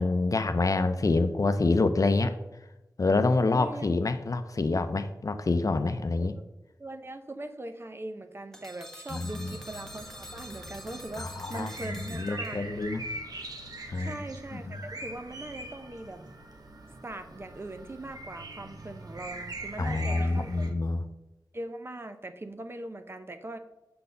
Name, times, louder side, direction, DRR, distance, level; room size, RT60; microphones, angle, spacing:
voice 1, 0.0-2.3 3.0-6.3 9.1-9.6 11.2-11.7 12.1-13.0 13.9-14.2 14.5-14.6 19.8-21.0, left 3 dB, 50° left, 10 dB, 0.6 m, -26 dB
voice 2, 3.5-3.9 6.2-6.3 6.8-12.9 14.0-16.2 17.0-20.7 21.5-23.6, right 2 dB, 35° right, 8 dB, 0.7 m, -41 dB
sound 1, 8.5-12.8, left 1 dB, 5° left, 1.4 m, -46 dB
sound 2, 9.3-20.7, right 2 dB, 60° right, 1.2 m, -42 dB
7.7 x 4.1 x 6.8 m, 0.97 s
wide cardioid pair, 80°, 7 cm